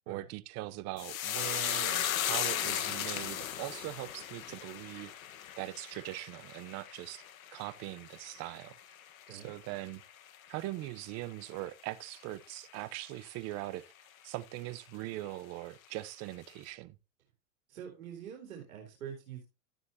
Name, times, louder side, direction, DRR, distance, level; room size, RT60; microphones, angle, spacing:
voice 1, 0.1-5.1 5.6-7.2 7.5-8.8 9.3-10.0 10.5-13.8 14.2-17.0, right 17 dB, 40° right, 0.8 m, -41 dB
sound 1, 1.0-9.6 9.9-10.5 10.8-11.1, left 10 dB, 75° left, 1.6 m, -36 dB
voice 2, 17.7-19.4, right 9 dB, 80° right, 3.7 m, -45 dB
13.0 x 9.2 x 2.9 m
hypercardioid pair, 120°, 41 cm